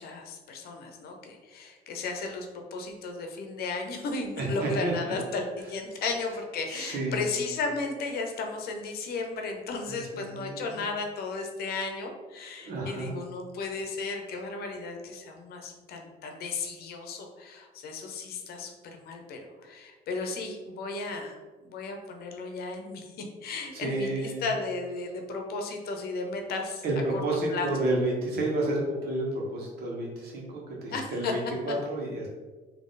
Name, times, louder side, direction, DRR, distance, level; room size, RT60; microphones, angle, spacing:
voice 1, 0.0-18.7 19.0-23.1 23.4-26.8 27.1-27.2 27.5-27.7 30.9-31.3, left 3 dB, 65° left, 3 dB, 0.8 m, -34 dB
voice 2, 4.4-5.1 6.7-7.3 9.9-10.9 12.6-13.1 23.7-24.5 26.8-32.3, right 1 dB, 65° right, -2 dB, 1.4 m, -31 dB
3.9 x 2.9 x 3.8 m, 1.3 s
cardioid pair, 110°, 17 cm